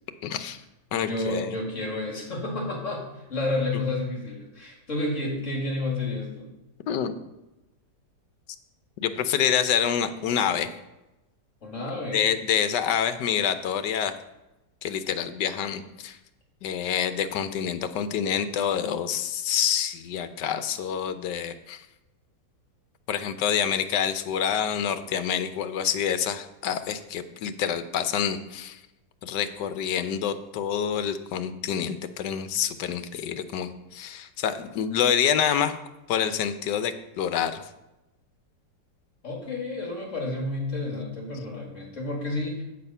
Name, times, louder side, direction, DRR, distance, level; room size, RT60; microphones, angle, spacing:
voice 1, 0.2-0.6 0.9-1.5 6.9-7.1 9.0-10.7 12.1-14.1 14.8-16.2 16.6-21.8 23.1-28.8 29.2-35.7 36.1-37.6, left 8 dB, 75° left, 10 dB, 1.3 m, -27 dB
voice 2, 1.0-3.0 3.3-6.5 11.6-12.3 39.2-42.6, left 2 dB, 40° left, -1 dB, 2.3 m, -30 dB
8.5 x 6.5 x 5.5 m, 0.99 s
omnidirectional pair, 2.0 m